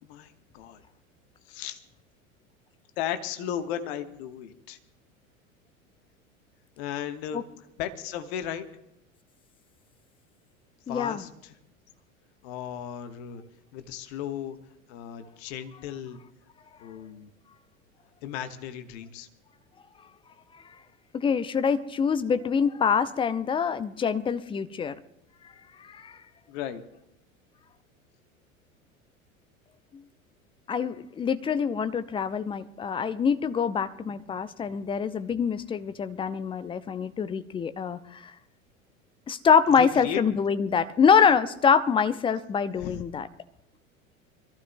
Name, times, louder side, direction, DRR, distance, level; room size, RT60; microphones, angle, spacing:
voice 1, 0.0-0.8 1.5-1.8 3.0-4.8 6.8-7.4 7.8-8.7 10.9-11.5 12.4-13.4 13.7-14.6 14.9-16.2 16.8-17.3 18.2-19.3 26.5-26.8 39.8-40.2 42.8-43.0, left 10 dB, 50° left, 8 dB, 1.3 m, -35 dB
voice 2, 10.9-11.2 21.1-24.9 25.8-26.2 29.9-30.0 30.7-38.3 39.3-43.3, left 6 dB, 15° left, 12 dB, 0.5 m, -25 dB
26.0 x 14.5 x 2.2 m, 0.84 s
figure-of-eight pair, 80°, 41 cm